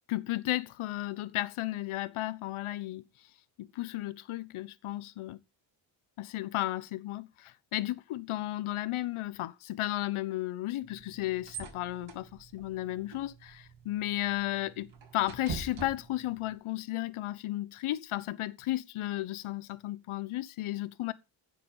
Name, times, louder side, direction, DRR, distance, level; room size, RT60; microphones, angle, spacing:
voice 1, 0.1-3.0 3.6-5.4 6.2-21.1, left 16 dB, 85° left, 1.3 m, -34 dB
sound 1, 10.8-16.5, right 5 dB, 70° right, 6.1 m, -45 dB
15.5 x 7.7 x 5.5 m
cardioid pair, 80°, 48 cm